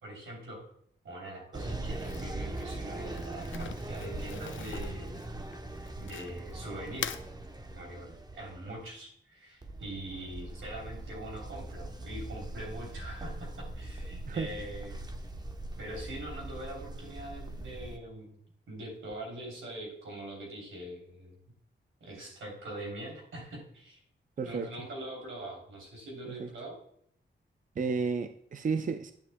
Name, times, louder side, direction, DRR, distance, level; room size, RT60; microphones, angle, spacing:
voice 1, 0.0-0.7 1.0-5.2 6.0-7.2 7.7-15.0 15.8-18.3 18.7-21.4 22.0-24.0 24.4-26.8, right 1 dB, 85° right, 3.2 m, -43 dB
sound 1, 1.5-8.8 9.6-18.0, right 2 dB, 20° right, 0.8 m, -41 dB
Crumpling crinkling, 1.9-6.5 6.9-7.3, left 9 dB, 75° left, 0.5 m, -43 dB
voice 2, 24.4-24.7 26.3-26.5 27.8-29.1, right 5 dB, 40° right, 0.5 m, -32 dB
10.5 x 7.0 x 2.2 m
cardioid pair, 70°, 20 cm